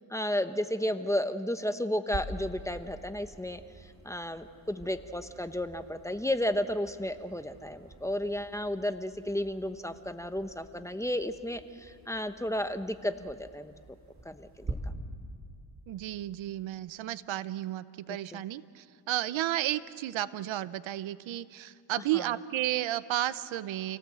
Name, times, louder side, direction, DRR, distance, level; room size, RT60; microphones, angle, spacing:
voice 1, 0.1-13.7 14.2-14.8 18.3-18.4 22.1-22.3, left 1 dB, 5° left, 9 dB, 1.0 m, -33 dB
sound 1, 2.1-14.7, right 3 dB, 35° right, 4.0 m, -47 dB
voice 2, 15.9-24.0, right 13 dB, 80° right, 16 dB, 0.8 m, -33 dB
29.0 x 17.5 x 7.7 m, 2.2 s
cardioid pair, 95°, 46 cm